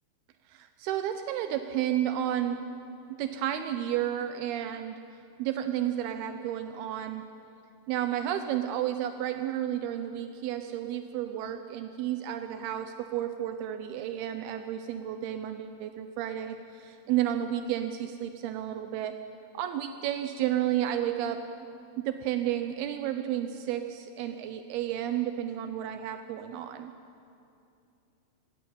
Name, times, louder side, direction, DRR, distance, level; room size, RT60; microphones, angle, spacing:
voice 1, 0.5-2.6 3.1-5.0 5.4-7.2 7.9-19.2 19.5-21.4 22.0-26.9, right 11 dB, 90° right, 8 dB, 2.2 m, -32 dB
18.0 x 17.0 x 8.7 m, 2.7 s
omnidirectional pair, 5.4 m